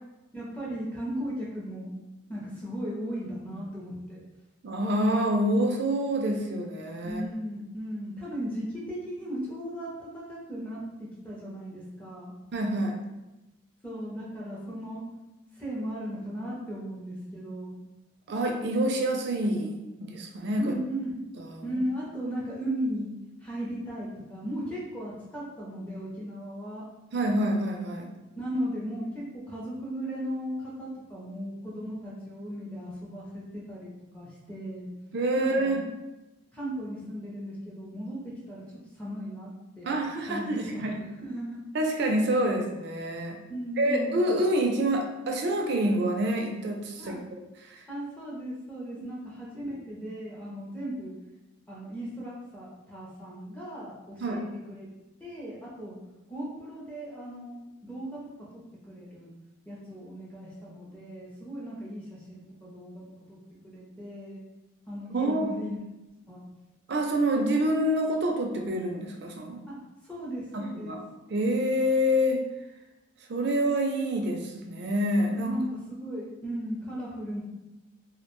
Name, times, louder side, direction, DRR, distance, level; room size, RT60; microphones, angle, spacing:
voice 1, 0.3-1.9 2.3-4.2 7.0-12.3 13.8-15.0 15.5-17.8 20.6-21.2 21.6-23.1 23.4-26.8 28.4-34.9 35.3-35.7 36.5-38.7 38.9-39.9 40.3-41.6 43.5-44.2 47.0-47.2 47.9-51.1 51.7-54.9 55.2-55.9 56.3-59.3 59.7-63.0 63.3-63.4 63.6-64.4 64.9-65.8 66.3-66.4 69.7-69.8 70.1-71.0 75.4-77.4, equal, 5° left, -6 dB, 0.4 m, -36 dB
voice 2, 4.6-7.2 12.5-13.0 18.3-20.7 21.4-21.8 27.1-28.1 35.1-35.8 39.8-41.1 41.7-43.4 43.8-47.2 47.6-47.8 54.2-54.4 65.1-65.5 66.9-69.6 70.5-71.0 71.3-72.4 73.3-75.6, right 1 dB, 55° right, 2 dB, 0.4 m, -27 dB
2.4 x 2.1 x 2.9 m, 1.0 s
head